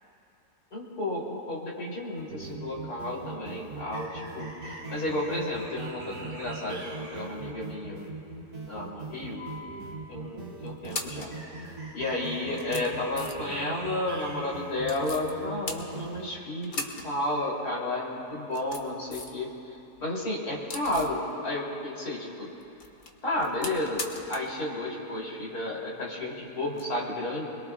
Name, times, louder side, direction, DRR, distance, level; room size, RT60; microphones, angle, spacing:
voice 1, 0.7-8.1 8.7-9.4 10.1-11.3 11.9-19.5 20.0-22.5 23.2-24.0 24.3-27.5, left 1 dB, 60° left, -4 dB, 3.6 m, -32 dB
sound 1, 2.2-16.3, right 3 dB, 80° right, 2.6 m, -40 dB
sound 2, 9.4-10.0 10.7-11.3 12.1-12.2 12.5-13.6 14.8-15.3 15.6-16.3 16.6-17.1 17.4-17.5 18.3-19.4 19.8-21.2 22.6-24.6 24.8-24.9 26.7-26.8, left 3 dB, 35° left, 1.0 m, -39 dB
25.0 x 21.5 x 2.3 m, 2.8 s
omnidirectional pair, 1.8 m